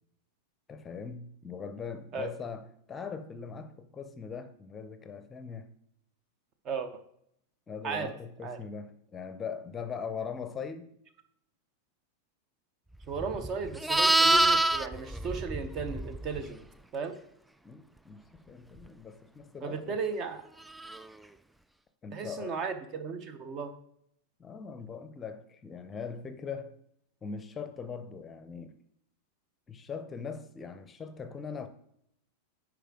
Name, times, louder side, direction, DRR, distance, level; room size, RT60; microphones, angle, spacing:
voice 1, 0.7-5.7 7.7-10.9 17.6-20.0 22.0-22.6 24.4-26.8 27.2-28.8 29.7-31.7, left 6 dB, 20° left, 0.7 m, -41 dB
voice 2, 6.6-7.0 7.8-8.1 8.4-8.6 13.1-16.6 16.9-17.2 19.6-20.4 22.1-23.7, right 5 dB, 35° right, 0.8 m, -35 dB
Livestock farm animals working animals, 13.1-16.4 20.8-21.0, right 1 dB, 5° right, 0.3 m, -26 dB
10.0 x 4.8 x 3.7 m
figure-of-eight pair, 90°, 0 cm